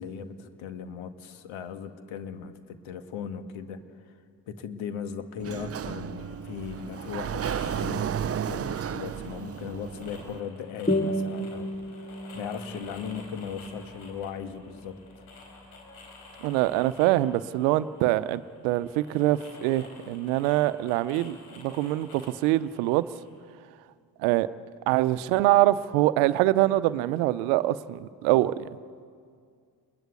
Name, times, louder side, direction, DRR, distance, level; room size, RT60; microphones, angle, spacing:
voice 1, 0.0-4.1 4.5-11.7 12.0-15.3, left 7 dB, 70° left, 1.9 m, -38 dB
Sliding door, 5.4-10.4, right 8 dB, 30° right, 0.6 m, -33 dB
sound 1, 5.8-23.4, left 3 dB, 90° left, 4.4 m, -51 dB
sound 2, 10.9-15.9, equal, 15° left, 3.1 m, -33 dB
voice 2, 16.4-23.1 24.2-24.5 24.9-28.7, right 16 dB, 80° right, 0.8 m, -24 dB
28.5 x 22.0 x 8.3 m
hypercardioid pair, 50°, 49 cm